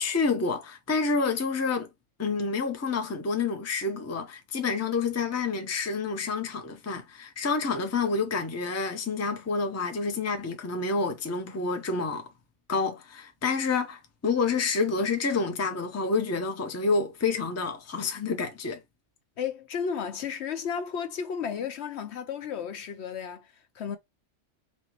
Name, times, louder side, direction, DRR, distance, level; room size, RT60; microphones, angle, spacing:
voice 1, 0.0-1.9 2.2-12.3 12.7-18.8, left 4 dB, 15° left, 0.5 m, -28 dB
voice 2, 19.4-24.0, left 7 dB, 65° left, 0.8 m, -33 dB
4.3 x 3.0 x 2.8 m
omnidirectional pair, 1.3 m